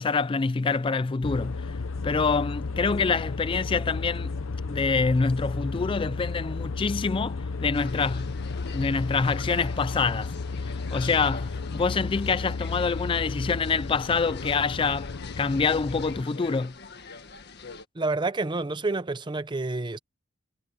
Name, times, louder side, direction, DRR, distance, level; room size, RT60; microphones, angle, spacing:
voice 1, 0.0-1.7 2.0-4.3 4.7-8.3 8.7-10.3 10.6-15.1 15.4-16.7, left 4 dB, 25° left, 0.4 m, -26 dB
sound 1, 1.2-16.2, left 4 dB, 85° left, 0.8 m, -33 dB
sound 2, 7.7-17.9, left 5 dB, 55° left, 1.8 m, -45 dB
voice 2, 17.9-20.0, right 3 dB, 25° right, 0.6 m, -28 dB
head